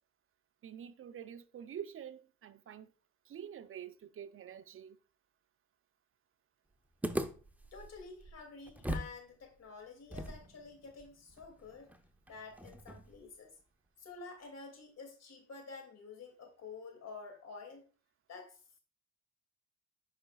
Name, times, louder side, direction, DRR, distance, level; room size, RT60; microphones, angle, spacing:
voice 1, 0.6-2.9 3.3-5.0, right 9 dB, 45° right, 0.6 m, -47 dB
sound 1, 7.0-9.2 9.4-9.5 10.1-13.2, right 1 dB, 5° right, 0.7 m, -41 dB
voice 2, 7.7-11.9 12.3-13.5 14.0-17.8 18.3-18.8, left 4 dB, 60° left, 2.5 m, -50 dB
8.9 x 5.6 x 2.4 m
cardioid pair, 90°, 30 cm